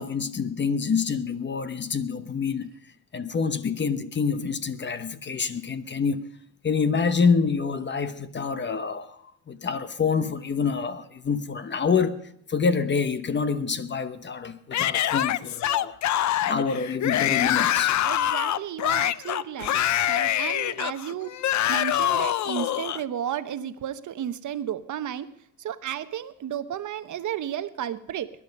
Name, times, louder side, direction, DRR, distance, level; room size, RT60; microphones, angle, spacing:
voice 1, 0.0-2.7 3.1-6.3 6.6-9.2 9.5-12.2 12.5-16.0 16.4-17.9, left 5 dB, 30° left, 1.0 m, -26 dB
Yell / Screaming, 14.7-23.0, left 12 dB, 50° left, 0.6 m, -25 dB
voice 2, 18.0-19.8 20.1-21.3 21.7-25.3 25.6-28.3, right 10 dB, 55° right, 1.0 m, -33 dB
21.5 x 11.0 x 5.3 m
cardioid pair, 115°, 37 cm